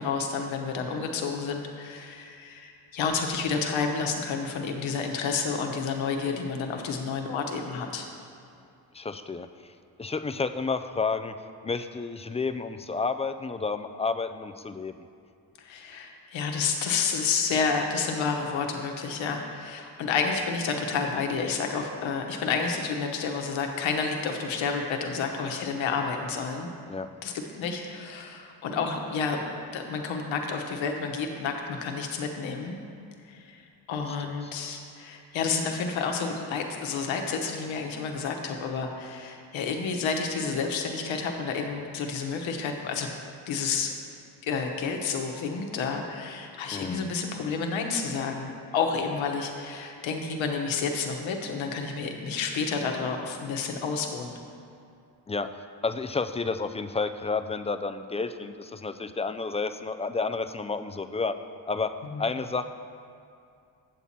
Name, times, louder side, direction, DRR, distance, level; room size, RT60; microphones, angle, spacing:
voice 1, 0.0-8.1 15.6-26.7 27.2-32.8 33.3-33.6 33.9-43.1 43.5-43.9 44.4-54.4 62.1-62.2, left 5 dB, 75° left, 3 dB, 1.1 m, -30 dB
voice 2, 8.9-9.7 10.0-11.3 11.6-14.9 26.9-27.1 46.7-47.1 55.3-55.5 55.8-61.4 61.7-61.9 62.2-62.6, left 4 dB, 15° left, 9 dB, 0.3 m, -30 dB
8.4 x 7.1 x 4.2 m, 2.5 s
supercardioid pair, 50°, 46 cm